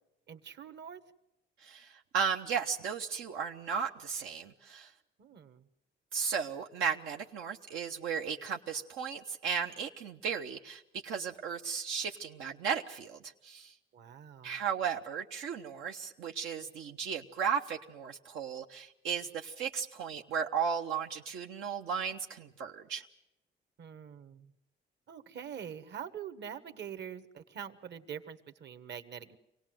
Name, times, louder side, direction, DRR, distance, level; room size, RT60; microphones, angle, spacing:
voice 1, 0.3-1.0 5.2-5.6 13.9-14.6 23.8-24.5 25.1-29.4, right 8 dB, 60° right, 10 dB, 1.3 m, -44 dB
voice 2, 1.6-4.9 6.1-13.7 14.4-23.0, right 6 dB, 90° right, 2 dB, 0.9 m, -35 dB
25.0 x 18.0 x 7.7 m, 0.89 s
cardioid pair, 90°, 20 cm